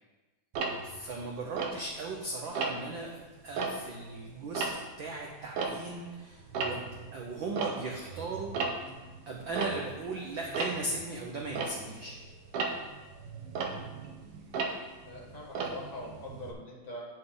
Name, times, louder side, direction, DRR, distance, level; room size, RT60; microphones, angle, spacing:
Tick-tock, 0.5-2.2 2.5-3.0 3.4-6.1 6.4-16.5, right 4 dB, 70° right, 1.6 m, -36 dB
voice 1, 0.8-4.7 5.0-6.9 7.1-8.6 9.3-12.2, right 3 dB, 90° right, -1 dB, 1.0 m, -38 dB
voice 2, 15.0-17.0, left 1 dB, 60° left, -4 dB, 0.4 m, -43 dB
7.7 x 7.6 x 3.9 m, 1.2 s
omnidirectional pair, 3.3 m